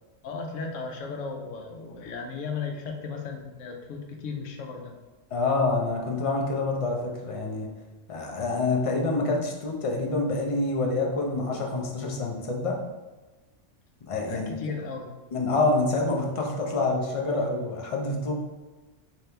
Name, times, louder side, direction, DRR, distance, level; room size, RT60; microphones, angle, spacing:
voice 1, 0.2-4.9 14.3-15.1, left 5 dB, 80° left, 2 dB, 1.0 m, -35 dB
voice 2, 5.3-7.7 8.1-12.8 14.0-14.5 15.3-18.3, left 3 dB, 50° left, 1 dB, 0.4 m, -27 dB
3.6 x 2.9 x 3.3 m, 1.2 s
omnidirectional pair, 1.3 m